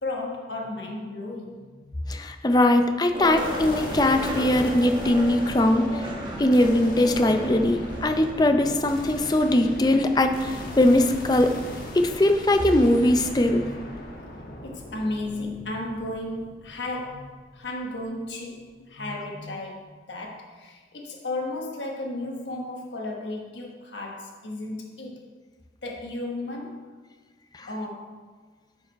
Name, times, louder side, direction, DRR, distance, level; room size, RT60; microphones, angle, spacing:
voice 1, 0.0-2.3 4.4-4.6 8.0-8.8 13.4-13.7 14.6-25.2 25.8-27.0 27.7-28.2, left 2 dB, 85° left, 0 dB, 1.2 m, -34 dB
voice 2, 2.1-6.1 6.4-11.5 11.9-13.7 27.5-27.7, left 1 dB, 20° left, 6 dB, 0.5 m, -21 dB
Skateboard, 3.1-8.8, equal, 25° right, 1.1 m, -34 dB
sound 1, 3.4-17.7, left 1 dB, 50° left, 1.3 m, -38 dB
10.5 x 4.7 x 4.5 m, 1.5 s
head